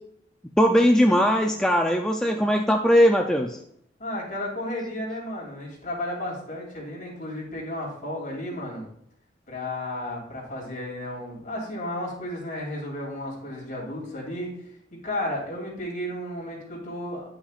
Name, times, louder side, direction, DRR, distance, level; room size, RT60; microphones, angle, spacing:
voice 1, 0.6-3.6, equal, 5° left, 2 dB, 0.3 m, -20 dB
voice 2, 4.0-8.9 9.5-14.5 15.0-17.2, left 1 dB, 45° left, -3 dB, 2.7 m, -33 dB
9.8 x 5.7 x 2.4 m, 0.72 s
head